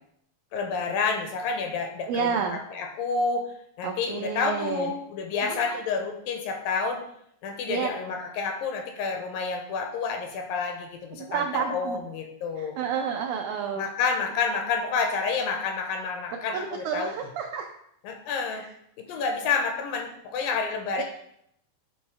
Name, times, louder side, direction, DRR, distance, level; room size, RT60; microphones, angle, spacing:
voice 1, 0.5-2.4 2.7-3.5 3.8-7.0 7.4-12.8 13.8-17.1 18.0-18.6 19.0-21.0, left 5 dB, 80° left, 4 dB, 2.4 m, -29 dB
voice 2, 2.1-2.6 3.8-4.9 5.4-5.8 7.7-7.9 11.1-12.0 12.6-13.8 16.5-17.7 18.5-18.7 19.1-19.2 21.0-21.1, right 7 dB, 85° right, 3 dB, 1.7 m, -30 dB
7.8 x 3.1 x 4.6 m, 0.73 s
omnidirectional pair, 4.1 m